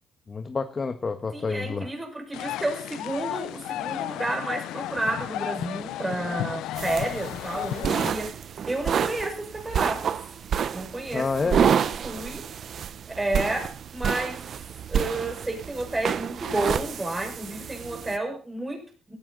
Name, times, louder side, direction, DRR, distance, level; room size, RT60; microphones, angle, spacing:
voice 1, 0.3-1.9 11.1-11.6, left 4 dB, 35° left, 8 dB, 1.5 m, -28 dB
voice 2, 1.3-10.1 10.7-12.5 13.2-14.4 14.9-19.1, right 2 dB, 15° right, 2 dB, 5.8 m, -31 dB
sound 1, 2.3-8.1, left 13 dB, 90° left, 0.7 m, -33 dB
sound 2, 6.8-18.2, right 8 dB, 60° right, 1.0 m, -29 dB
17.5 x 13.5 x 4.1 m, 0.36 s
cardioid pair, 90°, 0 cm